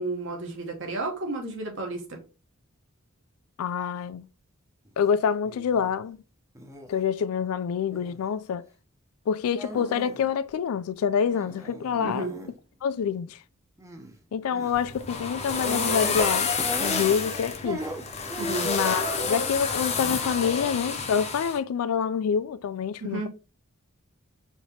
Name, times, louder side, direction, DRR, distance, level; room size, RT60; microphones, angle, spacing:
voice 1, 0.0-2.2 12.0-12.3 18.4-18.7 23.0-23.3, right 2 dB, 55° right, 1.1 m, -32 dB
voice 2, 3.6-4.3 5.0-6.2 6.9-8.7 9.3-12.3 12.8-13.4 14.3-16.5 16.8-17.8 18.6-23.3, left 7 dB, 80° left, 0.3 m, -27 dB
sound 1, 4.8-5.1 5.4-5.9 6.5-7.0 7.9-8.3 9.5-10.3 10.5-10.6 11.3-12.5 13.8-14.2 14.5-14.8 15.6-16.3 16.6-17.3 17.6-19.1 19.7-20.2, right 1 dB, 15° right, 0.5 m, -38 dB
sound 2, 14.7-21.6, left 4 dB, 30° left, 0.6 m, -29 dB
4.6 x 2.8 x 2.8 m
head